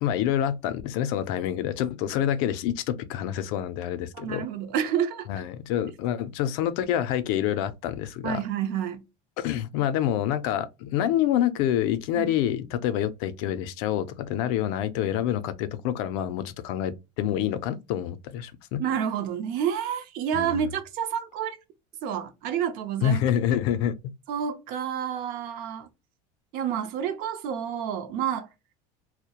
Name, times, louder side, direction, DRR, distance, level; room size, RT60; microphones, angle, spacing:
voice 1, 0.0-4.5 5.3-8.4 9.4-18.8 20.3-20.6 23.0-24.1, left 10 dB, 70° left, 0.4 m, -27 dB
voice 2, 4.1-5.3 8.2-9.0 12.1-12.3 18.8-21.6 22.0-23.2 24.3-25.9 26.5-28.5, right 8 dB, 60° right, 0.5 m, -29 dB
2.2 x 2.0 x 2.8 m
supercardioid pair, 135°, 17 cm